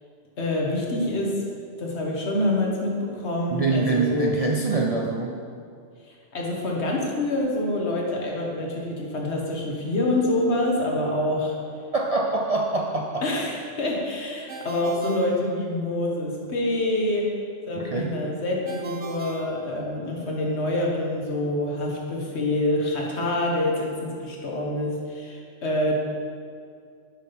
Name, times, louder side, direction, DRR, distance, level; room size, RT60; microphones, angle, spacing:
voice 1, 0.4-1.4 1.8-4.3 6.1-11.6 13.2-17.3 17.7-26.0, left 1 dB, 70° left, -2 dB, 1.6 m, -26 dB
voice 2, 3.5-5.4 11.9-13.3 17.7-18.2, right 3 dB, 50° right, 0 dB, 0.4 m, -25 dB
Ringtone, 14.5-16.2 18.7-20.3, right 5 dB, 75° right, 1.1 m, -39 dB
7.3 x 5.6 x 5.7 m, 2.3 s
omnidirectional pair, 1.2 m